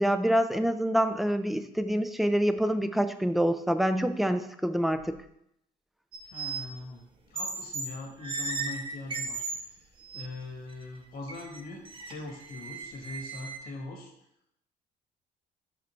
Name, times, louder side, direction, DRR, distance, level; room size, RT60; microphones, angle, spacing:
voice 1, 0.0-5.1, equal, ahead, 9 dB, 0.4 m, -26 dB
sound 1, 6.1-6.7 7.4-7.9 8.2-9.6 10.0-10.2 10.7-10.8 11.3-13.6, right 4 dB, 30° right, 1.0 m, -36 dB
voice 2, 6.3-9.8 10.1-14.1, left 2 dB, 65° left, 2 dB, 1.9 m, -41 dB
5.7 x 5.1 x 4.5 m, 0.78 s
cardioid pair, 110°, 17 cm